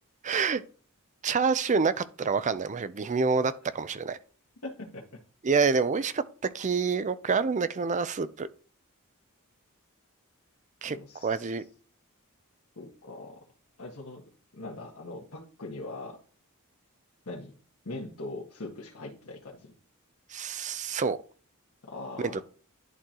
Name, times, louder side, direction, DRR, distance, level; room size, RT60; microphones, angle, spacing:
voice 1, 0.2-0.6 1.2-4.2 5.4-6.2 6.5-8.5 10.8-11.0 11.2-11.6 20.3-21.2 22.2-22.4, right 5 dB, 35° right, 0.4 m, -27 dB
voice 2, 4.6-5.0 10.9-11.4 12.7-13.4 13.8-14.2 14.5-16.2 17.2-17.5 17.8-19.7 21.8-22.4, left 2 dB, 70° left, 1.5 m, -41 dB
11.0 x 3.8 x 2.9 m
head